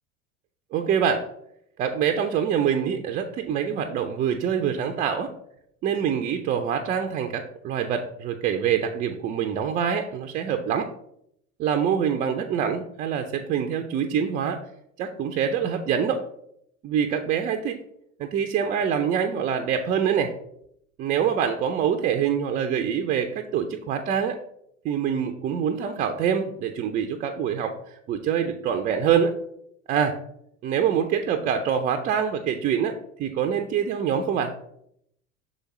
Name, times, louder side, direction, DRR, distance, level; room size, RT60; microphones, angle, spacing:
voice 1, 0.7-1.3 1.8-5.3 5.8-10.9 11.6-14.6 15.0-16.2 16.8-17.8 18.2-20.3 21.0-24.4 24.8-29.3 29.9-30.2 30.6-34.5, right 8 dB, 25° right, 6 dB, 0.3 m, -25 dB
6.4 x 4.9 x 3.0 m, 0.73 s
figure-of-eight pair, 75°, 39 cm